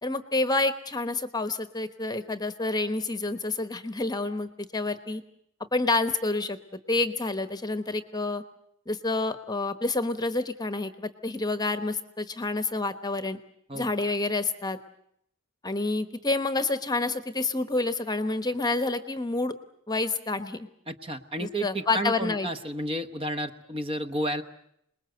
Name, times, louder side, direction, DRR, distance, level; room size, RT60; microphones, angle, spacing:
voice 1, 0.0-5.2 5.7-8.4 8.9-13.4 13.7-14.8 15.6-19.5 19.9-20.7 21.4-22.5, left 2 dB, 20° left, 11 dB, 1.1 m, -28 dB
voice 2, 20.9-24.4, right 1 dB, 25° right, 8 dB, 1.1 m, -31 dB
27.5 x 20.5 x 7.9 m, 0.73 s
head